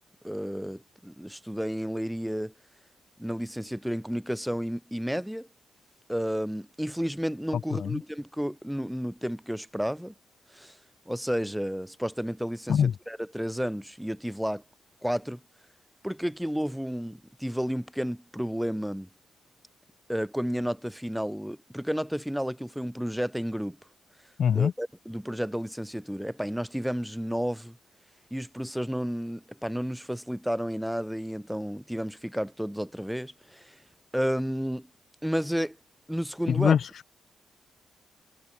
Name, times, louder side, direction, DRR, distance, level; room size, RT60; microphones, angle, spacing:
voice 1, 0.2-2.5 3.2-5.5 6.1-10.1 10.5-10.8 11.0-14.6 15.0-15.4 16.0-19.1 20.1-23.8 24.5-27.8 28.3-33.8 34.1-34.9 35.2-35.8 36.1-36.7, equal, ahead, 1.7 m, -31 dB
voice 2, 24.4-24.7 36.5-37.1, left 8 dB, 60° left, 0.4 m, -24 dB
cardioid pair, 105°, 0 cm